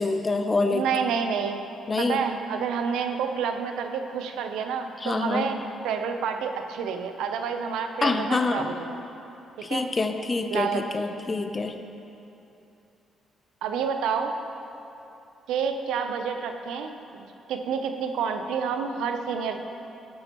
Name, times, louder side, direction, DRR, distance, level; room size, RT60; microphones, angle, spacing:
voice 1, 0.0-0.9 1.9-2.2 5.0-5.5 8.0-8.7 9.6-11.7, left 3 dB, 30° left, 7 dB, 0.6 m, -26 dB
voice 2, 0.7-1.6 2.0-5.6 5.8-9.0 9.7-9.9 10.5-10.9 13.6-14.4 15.5-19.6, right 6 dB, 85° right, 6 dB, 0.6 m, -29 dB
13.0 x 8.6 x 3.0 m, 2.8 s
cardioid pair, 90°, 0 cm